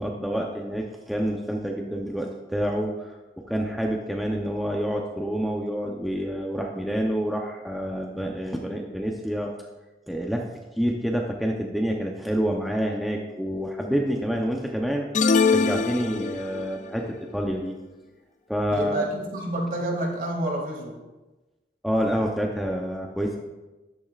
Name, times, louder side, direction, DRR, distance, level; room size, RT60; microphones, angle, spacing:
voice 1, 0.0-9.5 10.1-10.5 10.8-15.1 15.5-17.8 18.5-19.1 21.8-23.4, equal, ahead, 0 dB, 0.7 m, -28 dB
sound 1, 15.1-16.7, left 4 dB, 45° left, 0.4 m, -22 dB
voice 2, 18.7-21.0, right 1 dB, 50° right, 0 dB, 2.4 m, -29 dB
13.5 x 12.0 x 2.5 m, 1.1 s
head